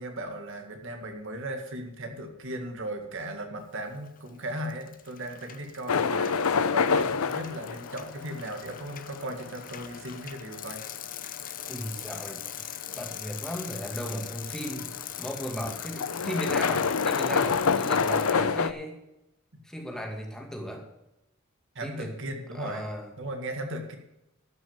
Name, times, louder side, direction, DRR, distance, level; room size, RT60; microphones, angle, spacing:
voice 1, 0.0-6.3 6.7-10.8 21.8-22.8 23.2-24.0, right 1 dB, 65° right, 4 dB, 2.0 m, -37 dB
Bicycle, 3.9-4.3 4.6-18.3, left 11 dB, 40° left, 0.7 m, -42 dB
sound 1, 5.9-18.7, left 5 dB, 80° left, 0.6 m, -28 dB
voice 2, 11.7-14.9 15.2-19.0 19.6-20.9 21.8-22.1 22.5-23.1, equal, 5° left, 0 dB, 2.3 m, -36 dB
13.0 x 6.3 x 7.2 m, 0.88 s
head